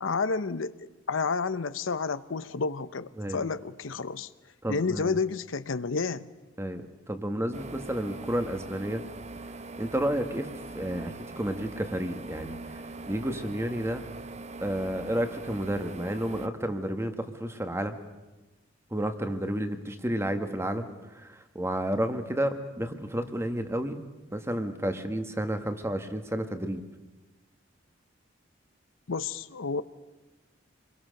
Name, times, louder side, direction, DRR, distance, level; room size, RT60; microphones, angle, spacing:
voice 1, 0.0-4.3 4.7-6.3 29.1-29.8, left 4 dB, 85° left, 14 dB, 0.7 m, -30 dB
voice 2, 4.6-5.2 6.6-9.0 9.8-12.8 13.1-14.0 14.6-18.0 18.9-24.0 24.3-26.8, right 1 dB, 15° right, 8 dB, 1.5 m, -31 dB
sound 1, 7.5-16.5, right 3 dB, 35° right, 0.7 m, -42 dB
26.5 x 22.0 x 6.6 m, 1.1 s
head